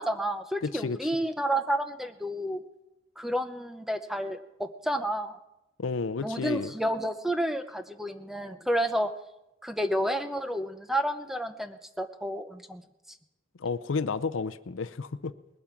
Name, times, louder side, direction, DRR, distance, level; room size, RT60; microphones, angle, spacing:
voice 1, 0.0-2.6 3.2-5.4 6.2-9.1 9.6-12.8, right 1 dB, ahead, 9 dB, 0.6 m, -30 dB
voice 2, 0.6-1.1 5.8-6.7 13.6-15.3, left 4 dB, 80° left, 14 dB, 0.6 m, -31 dB
20.0 x 8.6 x 5.9 m, 0.94 s
head